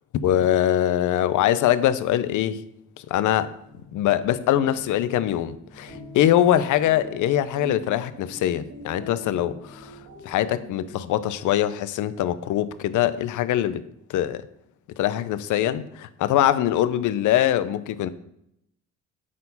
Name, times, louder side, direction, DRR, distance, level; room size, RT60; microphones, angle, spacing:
voice 1, 0.2-2.6 3.1-3.5 3.9-9.9 10.2-13.8 14.1-14.4 15.0-18.1, left 12 dB, 80° left, 0.6 m, -23 dB
sound 1, 3.5-11.1, right 1 dB, 70° right, 3.6 m, -45 dB
8.6 x 4.4 x 5.4 m
cardioid pair, 90°, 30 cm